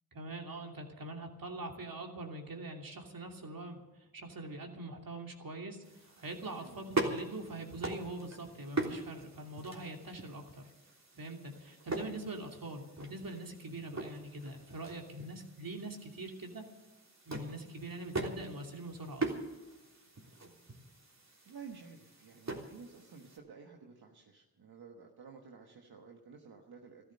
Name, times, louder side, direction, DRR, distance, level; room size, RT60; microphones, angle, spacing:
voice 1, 0.1-3.8 4.1-10.6 11.1-16.6 17.3-19.3, right 2 dB, 65° right, 2 dB, 2.9 m, -43 dB
sound 1, 5.8-23.4, right 2 dB, 45° right, 3.3 m, -42 dB
voice 2, 6.5-6.9 11.4-11.8 20.0-20.1 21.4-27.1, right 5 dB, 80° right, 1 dB, 1.5 m, -53 dB
13.5 x 13.5 x 6.7 m, 1.1 s
cardioid pair, 45°, 37 cm